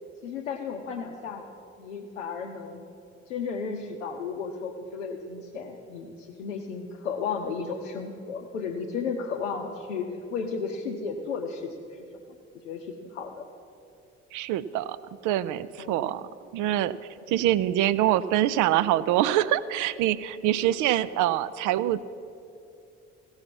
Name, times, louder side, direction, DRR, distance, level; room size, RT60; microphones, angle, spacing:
voice 1, 0.2-1.5 1.8-2.8 3.3-12.0 12.6-13.4 15.8-16.1 17.2-17.4, left 5 dB, 85° left, 0 dB, 0.7 m, -34 dB
voice 2, 14.3-15.0 15.2-16.3 16.5-17.0 17.3-22.0, right 13 dB, 55° right, 16 dB, 0.5 m, -25 dB
16.0 x 5.7 x 5.8 m, 2.6 s
figure-of-eight pair, 45°, 37 cm